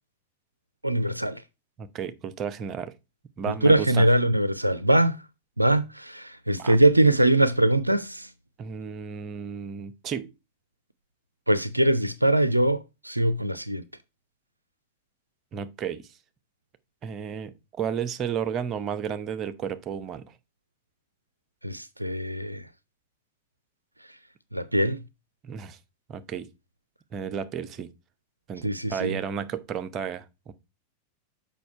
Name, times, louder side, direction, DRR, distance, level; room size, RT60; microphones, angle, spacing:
voice 1, 0.8-1.4 3.5-5.2 5.6-8.3 11.5-13.8 21.6-22.6 24.5-25.0 28.6-29.2, right 1 dB, 85° right, 0.4 m, -22 dB
voice 2, 1.8-2.9 3.4-4.1 6.6-6.8 8.6-10.3 15.5-16.1 17.0-20.3 25.4-25.8 26.1-26.5 27.1-27.9 28.5-30.5, right 7 dB, 30° right, 0.8 m, -33 dB
7.0 x 5.3 x 4.3 m
figure-of-eight pair, 90°, 0 cm